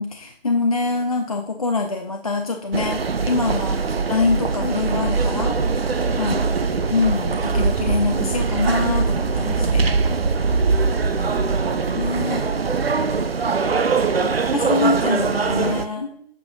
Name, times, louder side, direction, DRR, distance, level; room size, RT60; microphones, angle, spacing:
voice 1, 0.0-3.8 4.1-5.6 6.2-6.4 6.9-9.8 12.0-12.5 14.2-16.1, left 3 dB, 35° left, 3 dB, 0.5 m, -24 dB
sound 1, 2.7-15.8, right 4 dB, 70° right, 0.7 m, -22 dB
voice 2, 15.9-16.3, equal, 10° right, -14 dB, 2.8 m, -44 dB
7.5 x 5.9 x 2.7 m, 0.68 s
figure-of-eight pair, 150°, 31 cm